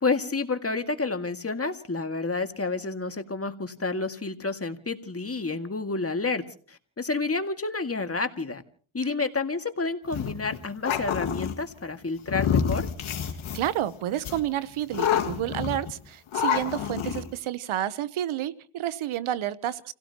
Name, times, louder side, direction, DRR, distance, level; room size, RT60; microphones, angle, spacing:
voice 1, 0.0-8.6 8.9-12.9, left 3 dB, 30° left, 7 dB, 1.9 m, -30 dB
sound 1, 10.1-11.5 12.3-13.8 14.2-14.4 14.9-15.9 16.3-17.3, left 8 dB, 80° left, 2.0 m, -27 dB
voice 2, 13.5-19.9, right 12 dB, 80° right, 17 dB, 0.9 m, -30 dB
30.0 x 16.5 x 2.9 m, 0.44 s
cardioid pair, 60°, 48 cm